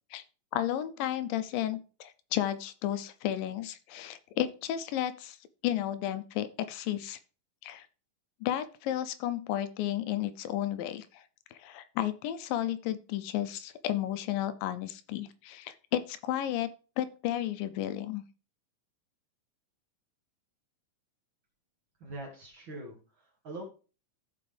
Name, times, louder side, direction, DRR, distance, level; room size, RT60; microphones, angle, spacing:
voice 1, 0.5-5.4 5.6-7.2 7.6-7.9 8.4-11.2 11.5-16.7 17.0-18.2, left 12 dB, 85° left, 12 dB, 2.3 m, -33 dB
voice 2, 22.0-23.6, right 2 dB, 45° right, -1 dB, 1.9 m, -43 dB
14.5 x 5.0 x 3.3 m, 0.35 s
omnidirectional pair, 4.0 m